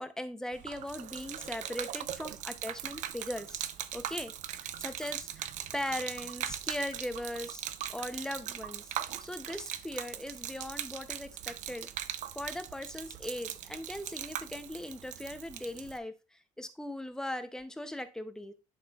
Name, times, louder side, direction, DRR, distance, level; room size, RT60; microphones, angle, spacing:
voice 1, 0.0-3.6 3.9-7.6 7.9-8.9 9.2-11.9 12.4-18.5, left 1 dB, 5° left, 9 dB, 0.5 m, -39 dB
Gurgling / Liquid, 0.5-16.0, right 11 dB, 55° right, 0.5 m, -40 dB
11.0 x 4.2 x 2.3 m, 0.27 s
cardioid pair, 155°, 15 cm